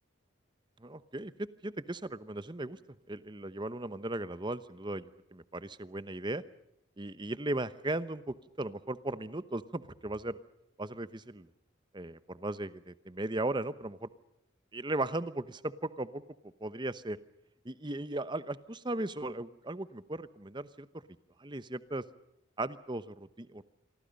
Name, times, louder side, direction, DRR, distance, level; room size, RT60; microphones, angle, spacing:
voice 1, 0.8-2.8 3.1-6.4 7.0-10.4 10.8-11.5 11.9-14.1 14.7-16.2 16.6-17.2 17.6-20.9 21.4-22.0 22.6-23.6, right 2 dB, 25° right, 14 dB, 0.9 m, -37 dB
28.0 x 23.5 x 5.4 m, 0.82 s
head